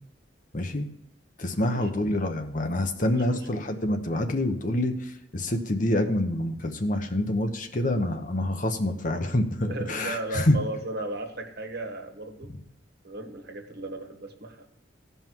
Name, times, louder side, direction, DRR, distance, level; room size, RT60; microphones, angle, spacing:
voice 1, 0.5-0.9 1.4-10.6 12.5-12.6, left 1 dB, 45° left, 6 dB, 1.0 m, -27 dB
voice 2, 1.6-1.9 3.0-3.5 9.7-12.5 13.0-14.6, right 2 dB, 60° right, 5 dB, 1.6 m, -36 dB
17.0 x 5.7 x 4.6 m, 0.80 s
head